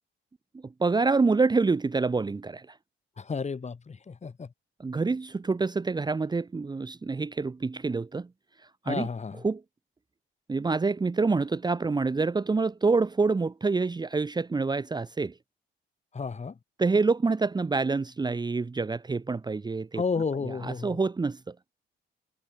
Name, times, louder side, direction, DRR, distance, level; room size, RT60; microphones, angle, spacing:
voice 1, 0.6-2.8 4.8-8.3 8.9-9.1 9.4-9.6 10.5-15.4 16.8-20.0 20.4-21.5, right 4 dB, 20° right, 0.9 m, -27 dB
voice 2, 3.2-4.5 8.9-9.4 16.1-16.5 20.0-21.0, left 5 dB, 35° left, 6.0 m, -32 dB
cardioid pair, 90°, 20 cm